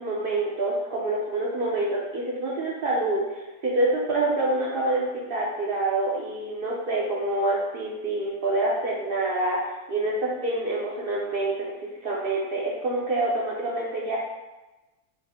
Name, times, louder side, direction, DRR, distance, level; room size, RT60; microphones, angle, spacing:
voice 1, 0.0-9.6 9.9-11.7 12.0-14.2, right 2 dB, 60° right, -4 dB, 0.6 m, -26 dB
4.0 x 2.1 x 4.2 m, 1.1 s
omnidirectional pair, 1.6 m